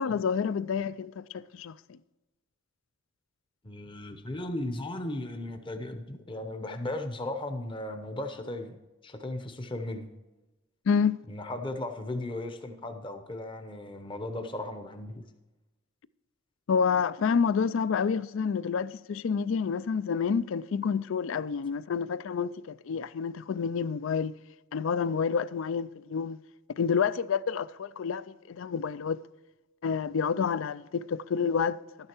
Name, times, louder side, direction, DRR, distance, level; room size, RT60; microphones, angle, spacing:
voice 1, 0.0-2.0 10.9-11.2 16.7-24.3 24.7-26.4 26.8-29.2 29.8-31.8, left 6 dB, 65° left, 0.4 m, -28 dB
voice 2, 3.6-8.8 9.0-10.1 11.3-15.2, left 1 dB, 25° left, 0.8 m, -36 dB
12.5 x 9.7 x 4.5 m
head